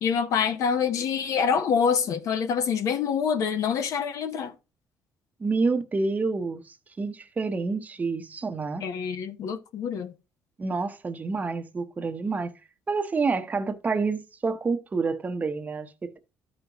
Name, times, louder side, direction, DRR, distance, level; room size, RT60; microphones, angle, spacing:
voice 1, 0.0-4.5 8.8-10.1, left 6 dB, 60° left, 0.9 m, -26 dB
voice 2, 5.4-8.8 10.6-12.5 12.9-16.2, right 4 dB, 25° right, 0.8 m, -28 dB
13.0 x 5.4 x 2.9 m
cardioid pair, 110°, 6 cm